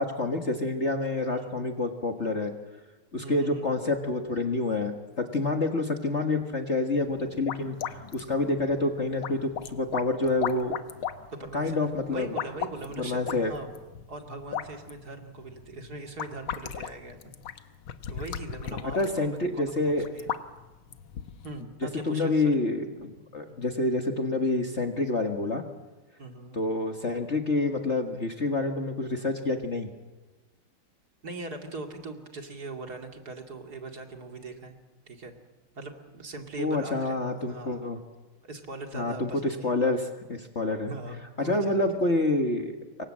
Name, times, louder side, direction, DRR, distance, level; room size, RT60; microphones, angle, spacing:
voice 1, 0.0-2.5 3.1-7.8 8.1-10.8 11.5-12.3 13.0-13.5 19.0-20.1 21.8-25.6 26.5-29.9 36.6-38.0 38.9-40.9 41.4-43.0, left 2 dB, 35° left, 5 dB, 1.8 m, -28 dB
voice 2, 1.3-1.6 3.2-3.7 11.3-11.8 12.1-13.7 14.1-17.2 18.1-20.3 21.4-22.4 23.4-23.6 26.2-26.6 31.2-34.7 35.1-35.3 35.7-37.8 38.4-39.8 40.9-42.0, right 3 dB, 45° right, 4 dB, 2.9 m, -40 dB
sound 1, 7.0-21.6, left 9 dB, 70° left, 1.8 m, -38 dB
27.5 x 24.0 x 7.6 m, 1.2 s
omnidirectional pair, 2.4 m